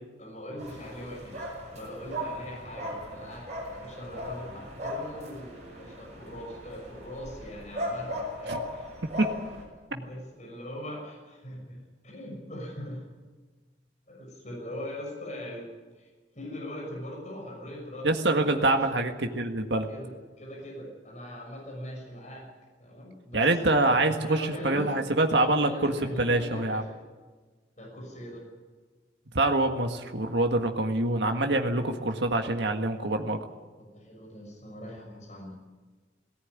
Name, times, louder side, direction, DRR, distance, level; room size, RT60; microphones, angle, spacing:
voice 1, 0.2-8.9 9.9-13.1 14.1-15.7 15.9-16.1 16.3-18.8 19.9-22.5 22.8-23.6 24.3-25.0 25.3-26.8 27.8-28.5 33.8-35.5, left 1 dB, 40° left, -2 dB, 6.3 m, -41 dB
sound 1, 0.6-9.6, equal, 40° right, 6.6 m, -38 dB
voice 2, 18.0-19.9 23.3-26.8 29.3-33.4, right 2 dB, 70° right, 4 dB, 1.8 m, -25 dB
18.5 x 17.5 x 9.8 m, 1.3 s
head